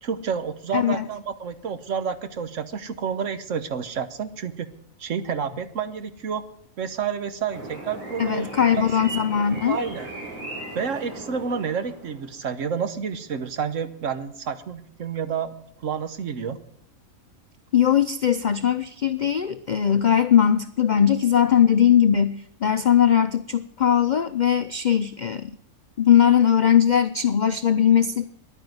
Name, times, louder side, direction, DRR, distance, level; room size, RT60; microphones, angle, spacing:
voice 1, 0.0-4.7 5.0-6.4 6.8-8.5 8.7-9.1 9.7-10.1 10.7-15.5 15.8-16.6, right 6 dB, 60° right, 11 dB, 1.3 m, -29 dB
voice 2, 0.7-1.0 8.2-9.8 17.7-25.5 26.0-28.3, left 9 dB, 85° left, 10 dB, 0.4 m, -20 dB
sound 1, 7.5-12.3, right 2 dB, 25° right, 5.1 m, -37 dB
11.0 x 9.2 x 9.4 m, 0.72 s
omnidirectional pair, 1.5 m